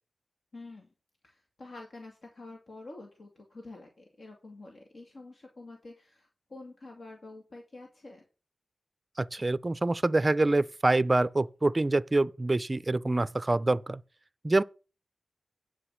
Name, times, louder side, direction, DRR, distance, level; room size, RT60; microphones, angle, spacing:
voice 1, 0.5-0.9 1.2-8.2, left 2 dB, 65° left, 2.2 m, -48 dB
voice 2, 9.2-14.0 14.4-14.6, right 2 dB, 30° right, 0.4 m, -26 dB
10.0 x 4.9 x 7.3 m
wide cardioid pair, 85°, 0 cm